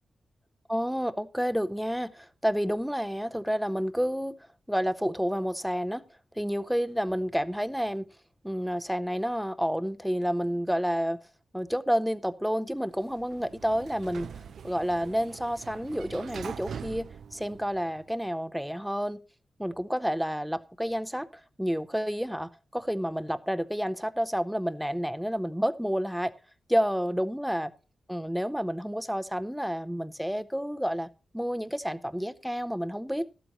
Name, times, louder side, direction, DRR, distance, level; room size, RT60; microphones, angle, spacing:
voice 1, 0.7-4.3 4.7-6.0 6.3-8.1 8.4-11.2 11.5-14.3 14.6-19.2 19.6-26.3 26.7-27.7 28.1-31.1 31.3-33.3, equal, ahead, 0.6 m, -30 dB
Sliding door, 12.9-18.1, right 7 dB, 80° right, 0.5 m, -43 dB
14.0 x 12.0 x 3.0 m
wide cardioid pair, 160°, 0 cm